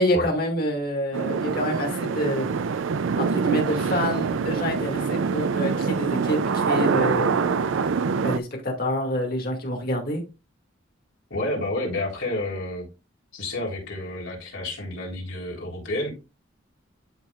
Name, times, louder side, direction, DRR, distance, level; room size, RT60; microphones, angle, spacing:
voice 1, 0.0-2.5 3.2-7.7 8.2-10.2, equal, 50° left, 2.2 m, -27 dB
sound 1, 1.1-8.4, right 5 dB, 80° right, 0.4 m, -25 dB
voice 2, 11.3-12.8 13.3-16.1, left 2 dB, 75° left, 3.9 m, -30 dB
12.0 x 4.4 x 2.4 m
head